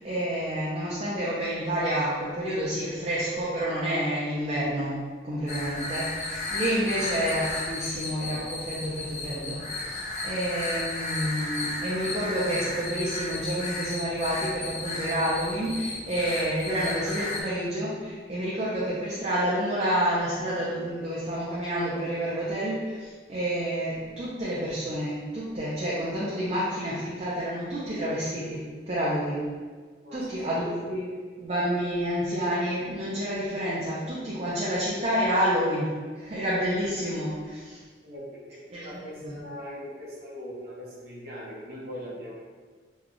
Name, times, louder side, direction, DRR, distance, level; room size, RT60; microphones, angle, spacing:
voice 1, 0.0-29.5 30.1-31.1 31.4-37.8 38.7-39.4, equal, 35° right, -8 dB, 0.5 m, -29 dB
sound 1, 5.5-17.4, left 2 dB, 35° left, 0.5 m, -34 dB
voice 2, 30.0-30.9 38.0-42.3, equal, 55° right, -6 dB, 1.0 m, -41 dB
3.1 x 2.3 x 3.8 m, 1.5 s
head